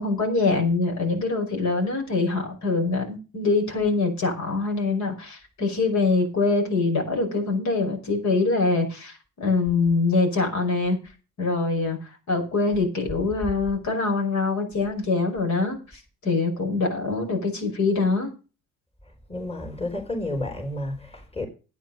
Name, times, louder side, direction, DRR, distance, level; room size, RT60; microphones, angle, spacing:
voice 1, 0.0-11.0 11.4-12.0 12.3-18.3, left 3 dB, 70° left, 5.4 m, -24 dB
voice 2, 19.3-21.5, left 1 dB, 20° left, 3.9 m, -31 dB
11.0 x 9.5 x 5.3 m
cardioid pair, 90°, 30 cm